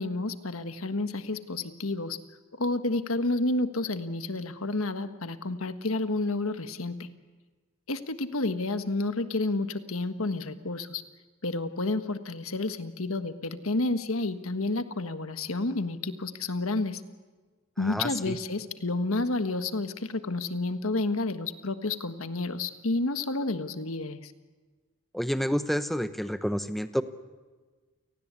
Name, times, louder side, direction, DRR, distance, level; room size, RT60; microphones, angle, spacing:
voice 1, 0.0-2.2 2.6-7.1 7.9-11.0 11.4-17.0 17.8-24.3, left 2 dB, 70° left, 9 dB, 1.5 m, -30 dB
voice 2, 17.8-18.4 25.1-27.0, equal, ahead, 10 dB, 0.9 m, -29 dB
29.5 x 18.5 x 8.4 m, 1.4 s
head